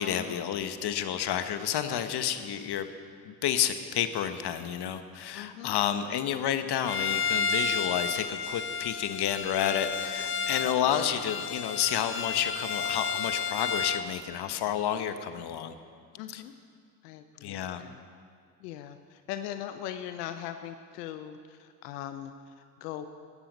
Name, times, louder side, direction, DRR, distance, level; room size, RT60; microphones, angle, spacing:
voice 1, 0.0-2.9 3.2-15.7 16.3-16.4 17.4-17.8, left 9 dB, 55° left, 10 dB, 1.2 m, -30 dB
voice 2, 5.3-5.8 11.0-11.1 16.2-16.5 17.0-18.0 18.6-23.1, left 11 dB, 85° left, 9 dB, 0.7 m, -40 dB
Bowed string instrument, 6.9-14.1, left 5 dB, 25° left, 0.8 m, -32 dB
15.5 x 13.0 x 5.3 m, 2.2 s
hypercardioid pair, 55°, 46 cm